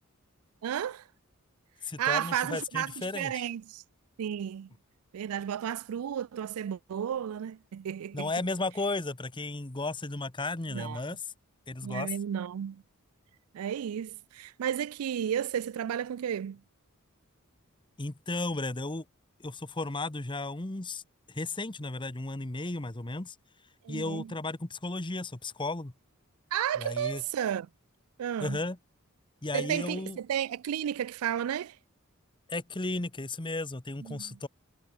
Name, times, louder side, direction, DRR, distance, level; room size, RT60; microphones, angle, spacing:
voice 1, 0.6-1.1 2.0-3.8 4.2-4.7 5.1-8.3 10.7-11.0 11.8-12.8 13.5-16.6 23.8-24.3 26.5-27.7 28.2-28.6 29.5-31.8 34.0-34.4, right 9 dB, 90° right, 0.4 m, -33 dB
voice 2, 1.8-3.4 8.1-11.2 11.7-12.1 18.0-19.0 19.4-21.0 21.3-23.4 23.9-25.9 26.8-27.2 28.4-28.8 29.4-30.2 32.5-34.5, left 2 dB, 20° left, 1.1 m, -34 dB
head